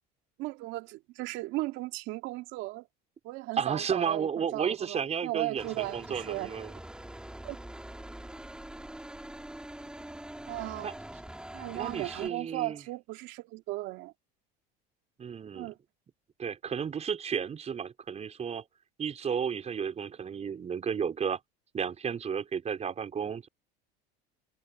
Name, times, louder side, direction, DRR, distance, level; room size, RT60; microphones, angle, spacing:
voice 1, 0.4-2.9 3.2-5.0 5.2-6.5 7.4-7.6 10.5-10.9 11.5-14.1 15.5-15.7, right 19 dB, 65° right, 2.6 m, -36 dB
voice 2, 3.6-6.7 10.8-10.9 11.7-12.8 15.2-15.7 16.4-18.6 19.0-21.4 21.7-23.5, right 7 dB, 30° right, 5.6 m, -33 dB
sound 1, 5.6-12.3, right 1 dB, 5° right, 2.6 m, -44 dB
supercardioid pair, 100°, 21 cm